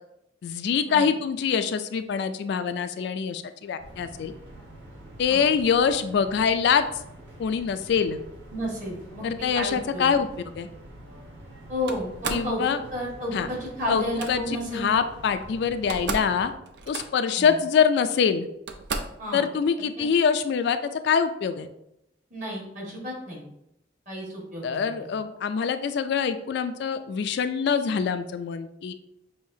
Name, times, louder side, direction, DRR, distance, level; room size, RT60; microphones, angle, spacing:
voice 1, 0.4-4.3 5.2-6.8 7.4-8.2 9.2-10.3 10.5-10.7 12.3-12.8 13.3-13.5 13.9-16.5 16.9-18.5 19.3-21.7 24.6-28.9, left 6 dB, 65° left, 10 dB, 0.3 m, -24 dB
sound 1, 3.8-16.5, right 1 dB, 80° right, 1.2 m, -46 dB
voice 2, 8.5-9.2 9.5-10.1 11.7-12.6 12.9-14.9 17.4-17.5 19.2-19.5 22.3-23.4 24.1-24.9, equal, 45° right, -3 dB, 1.6 m, -32 dB
Slam, 11.9-12.5 13.9-14.3 15.4-15.5 15.7-16.4 16.6-17.3 18.1-18.2 18.7-19.2, right 4 dB, 65° right, 0.4 m, -33 dB
6.4 x 2.7 x 2.7 m, 0.83 s
head